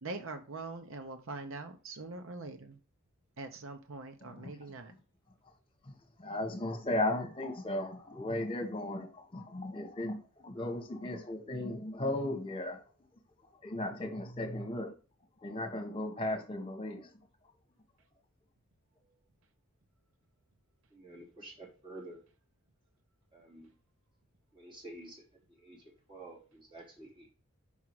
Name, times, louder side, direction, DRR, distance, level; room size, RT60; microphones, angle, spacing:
voice 1, 0.0-2.8 3.4-4.9, right 3 dB, 65° right, 0.9 m, -43 dB
voice 2, 4.2-4.5 5.8-12.8 13.6-14.9 15.4-17.1, left 1 dB, 25° left, 1.5 m, -36 dB
voice 3, 20.9-22.2 23.3-23.7 24.5-27.3, right 2 dB, 25° right, 3.4 m, -50 dB
5.7 x 4.8 x 4.7 m
head